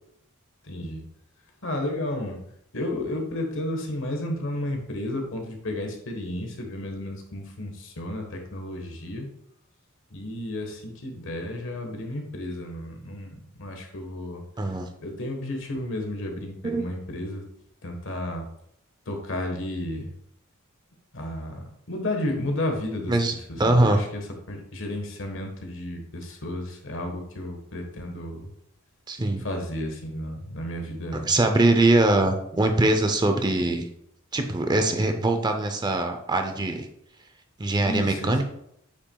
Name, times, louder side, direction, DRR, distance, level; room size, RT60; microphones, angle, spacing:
voice 1, 0.6-1.0 1.6-9.3 10.1-14.4 15.0-17.4 17.8-18.5 19.1-20.1 21.1-23.2 23.6-28.5 29.4-31.3 37.8-38.4, left 1 dB, 65° left, 4 dB, 1.3 m, -32 dB
voice 2, 14.6-14.9 16.6-16.8 23.1-24.0 29.1-29.5 31.2-33.9 34.3-36.9 37.6-38.4, right 2 dB, 20° right, 6 dB, 0.5 m, -22 dB
8.3 x 5.9 x 2.3 m, 0.73 s
head